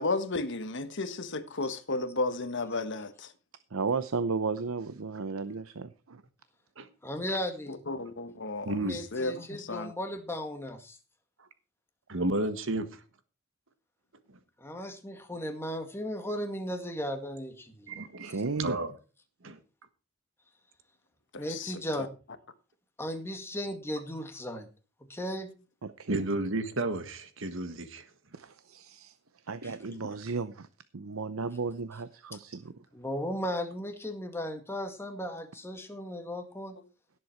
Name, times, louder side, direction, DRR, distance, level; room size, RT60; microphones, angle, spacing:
voice 1, 0.0-3.3 7.7-9.9 21.3-21.7 22.0-22.1, left 2 dB, 60° left, 1.3 m, -33 dB
voice 2, 3.7-6.2 18.0-18.8 26.0-26.2 28.3-29.1 29.5-30.7 30.9-32.7, right 4 dB, 85° right, 0.7 m, -34 dB
voice 3, 7.0-7.8 8.8-11.0 14.6-18.0 21.4-22.1 23.0-24.7 25.1-25.5 29.6-29.7 32.9-36.8, equal, 10° left, 2.0 m, -36 dB
voice 4, 8.6-9.0 12.1-12.9 17.9-18.9 19.4-19.6 26.1-28.0, right 2 dB, 65° right, 1.7 m, -32 dB
17.5 x 7.7 x 4.5 m
head